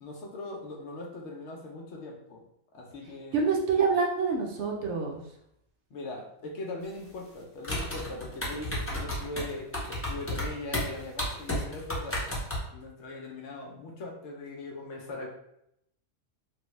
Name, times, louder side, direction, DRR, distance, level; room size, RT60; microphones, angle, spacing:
voice 1, 0.0-2.5 2.7-3.4 5.9-12.2 12.7-15.3, left 2 dB, 65° left, 0 dB, 0.9 m, -40 dB
voice 2, 3.3-5.2, right 5 dB, 65° right, 0 dB, 0.9 m, -26 dB
sound 1, 7.6-12.6, left 1 dB, 15° left, 0.6 m, -32 dB
3.3 x 2.2 x 3.1 m, 0.77 s
omnidirectional pair, 1.3 m